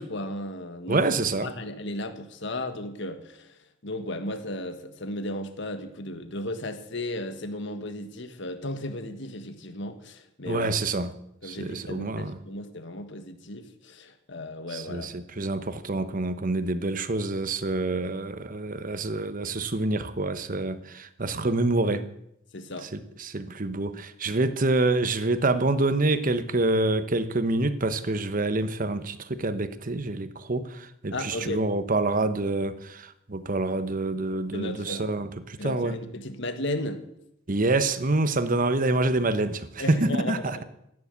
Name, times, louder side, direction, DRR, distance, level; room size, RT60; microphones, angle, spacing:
voice 1, 0.0-1.0 1.4-10.7 11.4-15.1 22.5-22.9 31.1-31.6 34.5-35.1 35.6-37.0 39.8-40.6, left 1 dB, 60° left, 1.6 m, -35 dB
voice 2, 0.9-1.5 10.4-11.2 11.4-12.4 14.7-22.1 22.8-36.0 37.5-40.6, right 2 dB, 40° right, 1.1 m, -27 dB
14.5 x 9.9 x 8.3 m
head